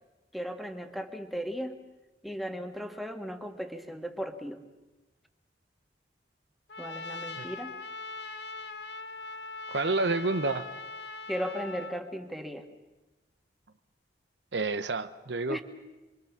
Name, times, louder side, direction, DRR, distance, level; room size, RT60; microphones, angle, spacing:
voice 1, 0.3-1.8 2.2-4.6 6.8-7.8 11.3-12.7 15.5-15.6, equal, ahead, 5 dB, 1.7 m, -36 dB
Trumpet, 6.7-12.0, left 3 dB, 70° left, 1.4 m, -41 dB
voice 2, 9.7-10.7 14.5-15.6, right 3 dB, 80° right, 11 dB, 1.0 m, -29 dB
27.5 x 23.0 x 7.3 m, 1.1 s
head